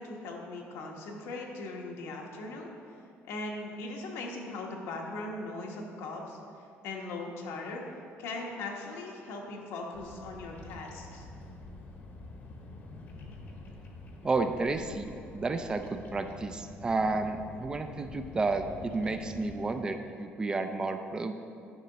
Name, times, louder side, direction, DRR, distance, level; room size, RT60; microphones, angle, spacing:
voice 1, 0.0-2.7 3.2-6.4 6.8-7.8 8.2-11.3, left 2 dB, 85° left, 0 dB, 1.3 m, -39 dB
Bird vocalization bird call bird song, 9.9-19.8, left 2 dB, 40° left, 0.9 m, -47 dB
voice 2, 14.2-21.4, right 3 dB, 20° right, 7 dB, 0.3 m, -31 dB
10.0 x 5.7 x 4.0 m, 2.5 s
cardioid pair, 165°, 5 cm